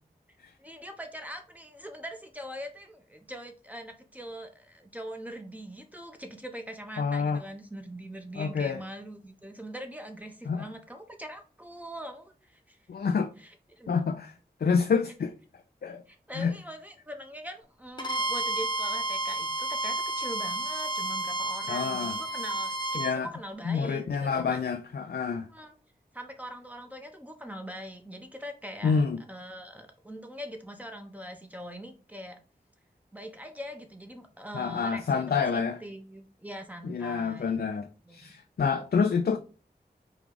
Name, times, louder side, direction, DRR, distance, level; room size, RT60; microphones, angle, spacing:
voice 1, 0.6-12.8 13.4-14.0 16.1-24.6 25.5-25.7 26.1-29.0 29.3-32.4 33.1-35.2 35.5-37.6 38.1-38.3, equal, 10° right, 0.9 m, -42 dB
voice 2, 7.0-7.4 8.4-8.8 10.5-10.7 12.9-13.3 13.9-14.3 14.6-15.3 15.8-16.0 16.3-16.5 21.7-22.2 23.0-23.3 23.7-25.5 28.8-29.2 34.5-35.8 36.8-39.4, left 5 dB, 65° left, 0.4 m, -28 dB
Bowed string instrument, 18.0-23.2, right 2 dB, 25° left, 0.9 m, -31 dB
4.7 x 2.3 x 3.8 m
wide cardioid pair, 40°, 17 cm